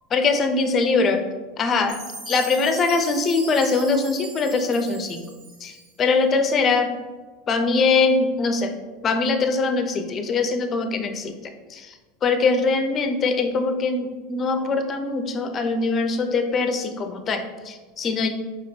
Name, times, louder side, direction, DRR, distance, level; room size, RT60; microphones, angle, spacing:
voice 1, 0.1-1.3 1.6-2.0 2.3-5.3 5.6-6.9 7.5-8.8 9.0-18.3, left 4 dB, 35° left, 7 dB, 0.5 m, -22 dB
Chime, 1.9-6.1, right 3 dB, 70° right, 1.3 m, -39 dB
5.0 x 3.4 x 2.8 m, 1.3 s
hypercardioid pair, 90°, 0 cm